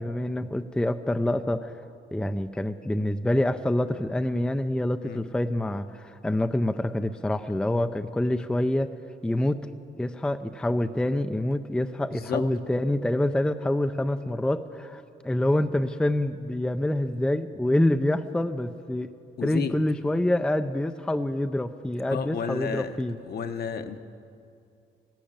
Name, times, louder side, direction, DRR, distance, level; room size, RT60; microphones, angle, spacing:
voice 1, 0.0-1.7 2.1-8.9 9.2-9.6 10.0-19.1 19.4-23.2, left 1 dB, 5° left, 9 dB, 0.4 m, -26 dB
voice 2, 12.1-12.4 19.4-19.7 22.1-23.0 23.2-24.0, left 7 dB, 50° left, 8 dB, 1.0 m, -31 dB
13.5 x 11.5 x 8.7 m, 2.5 s
cardioid pair, 90°, 20 cm